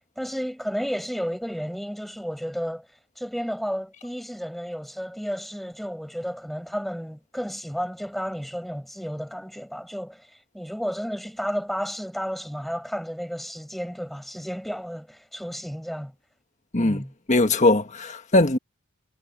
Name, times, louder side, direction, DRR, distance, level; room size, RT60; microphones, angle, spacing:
voice 1, 0.2-2.9 3.2-16.1 16.8-17.1, equal, ahead, 5.5 m, -32 dB
voice 2, 17.3-18.6, left 2 dB, 35° left, 1.5 m, -20 dB
head